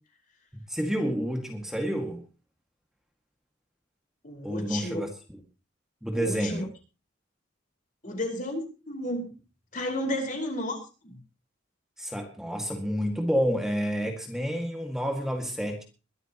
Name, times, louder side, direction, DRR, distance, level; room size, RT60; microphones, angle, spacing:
voice 1, 0.5-2.2 4.4-5.1 6.0-6.7 12.0-15.8, equal, 5° right, 3 dB, 1.9 m, -29 dB
voice 2, 4.2-5.0 6.1-6.7 8.0-9.3 9.7-10.8 11.0-11.2, left 1 dB, 45° left, 3 dB, 4.9 m, -32 dB
22.0 x 13.0 x 3.0 m, 0.33 s
head